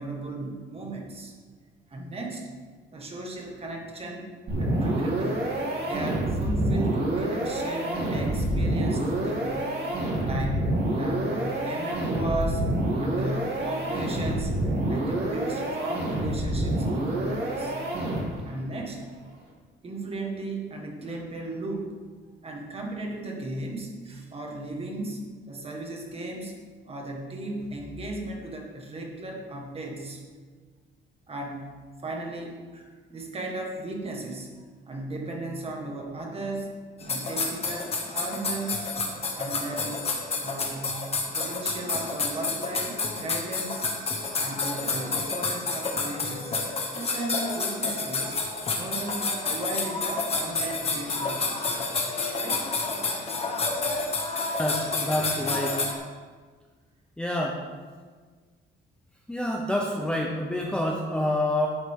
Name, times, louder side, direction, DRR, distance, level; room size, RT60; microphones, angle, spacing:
voice 1, 0.0-1.3 1.9-2.5 2.9-4.3 4.6-9.7 10.2-12.6 13.0-14.6 14.9-17.7 18.4-19.1 19.8-22.0 22.4-25.2 25.5-26.6 26.9-30.2 31.3-31.7 32.0-36.8 37.0-38.9 39.3-40.0 40.4-41.0 41.4-43.9 44.4-46.6 46.9-48.4 48.8-51.8 52.4-52.7 54.1-54.2, right 2 dB, 30° right, 0 dB, 1.7 m, -35 dB
sound 1, 4.5-18.5, right 1 dB, 50° right, 3.0 m, -27 dB
sound 2, 37.0-55.9, left 3 dB, 30° left, 1.3 m, -29 dB
voice 2, 54.6-55.8 57.2-57.6 59.3-61.7, left 1 dB, 5° left, -1 dB, 0.7 m, -27 dB
12.0 x 7.9 x 3.7 m, 1.5 s
cardioid pair, 160°, 21 cm